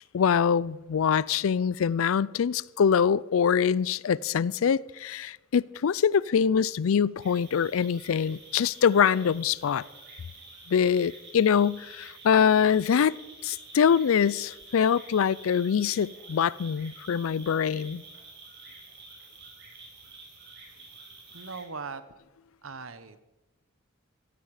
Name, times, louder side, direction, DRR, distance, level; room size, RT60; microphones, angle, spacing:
voice 1, 0.1-9.9 10.7-13.2 13.4-18.0, left 7 dB, 75° left, 0.4 m, -24 dB
sound 1, 7.2-21.6, right 3 dB, 60° right, 5.5 m, -49 dB
voice 2, 21.3-22.0 22.6-23.2, right 4 dB, 80° right, 1.1 m, -39 dB
16.0 x 16.0 x 4.9 m
head